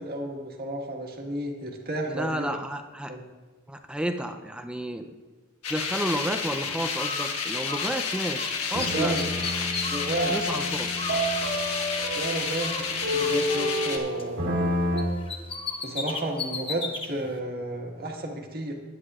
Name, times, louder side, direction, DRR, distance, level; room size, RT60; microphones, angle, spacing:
voice 1, 0.0-2.5 3.1-3.2 8.9-9.2 9.8-10.4 12.1-14.5 15.8-18.7, right 1 dB, 45° right, 1 dB, 1.6 m, -32 dB
voice 2, 2.1-3.1 3.7-5.1 5.7-9.2 10.3-10.9, equal, 5° right, 6 dB, 0.5 m, -31 dB
sound 1, 5.6-14.0, left 5 dB, 85° left, 1.4 m, -30 dB
Bird, 6.9-8.5 8.8-12.2 12.6-14.7 15.0-17.1, left 4 dB, 25° left, 1.0 m, -37 dB
sound 2, 7.6-8.0 8.7-15.0, equal, 65° right, 1.7 m, -29 dB
18.0 x 10.0 x 2.4 m, 1.3 s
head